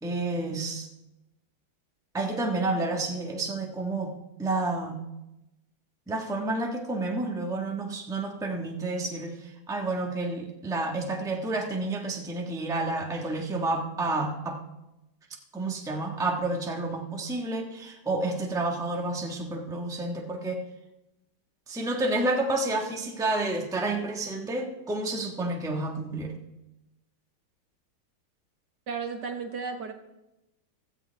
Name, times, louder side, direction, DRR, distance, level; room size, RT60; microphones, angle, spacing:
voice 1, 0.0-0.9 2.1-4.1 4.4-5.0 6.1-14.6 15.5-20.6 21.7-26.3, right 2 dB, ahead, 1 dB, 1.1 m, -30 dB
voice 2, 28.9-29.9, right 5 dB, 60° right, 5 dB, 1.6 m, -34 dB
16.0 x 13.5 x 3.4 m, 0.94 s
omnidirectional pair, 2.2 m